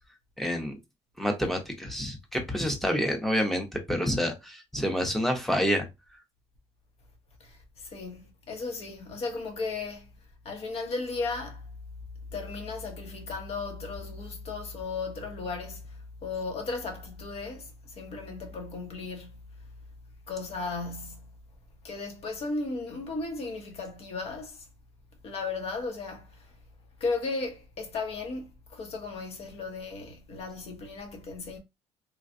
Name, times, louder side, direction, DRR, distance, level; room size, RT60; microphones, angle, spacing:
voice 1, 0.4-0.7 1.2-5.9, equal, ahead, 0.7 m, -28 dB
voice 2, 7.4-10.1 10.4-11.7 12.3-19.4 20.3-21.3 21.8-24.6 25.2-26.5 27.0-31.6, left 3 dB, 60° left, 1.0 m, -35 dB
3.2 x 2.3 x 2.5 m
cardioid pair, 110°, 12 cm